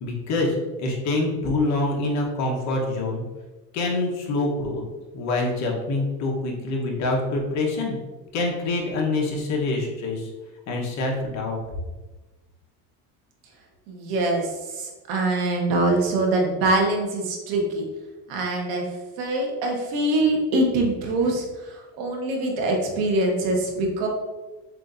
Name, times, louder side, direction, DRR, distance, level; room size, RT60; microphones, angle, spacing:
voice 1, 0.0-3.2 3.7-4.8 5.1-8.0 8.3-10.3 10.7-11.6, left 2 dB, 50° left, -1 dB, 1.1 m, -25 dB
voice 2, 13.9-17.8 18.3-18.9 19.2-24.1, right 2 dB, 90° right, 0 dB, 1.2 m, -24 dB
7.3 x 2.7 x 2.6 m, 1.2 s
cardioid pair, 160°, 36 cm